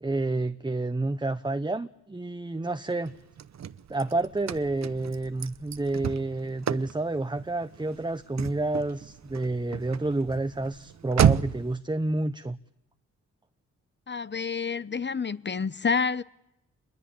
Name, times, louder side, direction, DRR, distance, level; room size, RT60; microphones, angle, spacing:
voice 1, 0.0-3.1 3.9-12.6, right 2 dB, 15° right, 1.0 m, -29 dB
Car / Slam, 3.1-11.7, right 9 dB, 60° right, 1.0 m, -31 dB
voice 2, 14.1-16.2, left 5 dB, 35° left, 0.9 m, -28 dB
27.0 x 21.5 x 8.8 m
cardioid pair, 55°, 30 cm